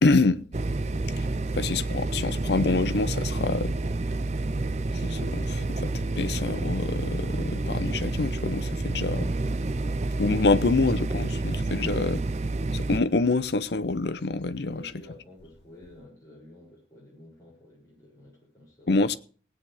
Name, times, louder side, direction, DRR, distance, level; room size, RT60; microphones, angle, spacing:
voice 1, 0.0-0.4 1.6-3.7 4.9-9.3 10.2-12.2 12.7-14.8 18.9-19.2, left 3 dB, 65° left, 0.7 m, -26 dB
sound 1, 0.5-13.0, right 2 dB, 35° right, 0.5 m, -29 dB
voice 2, 8.8-9.1 14.6-19.2, left 1 dB, 20° left, 6.9 m, -50 dB
20.0 x 9.5 x 3.5 m
head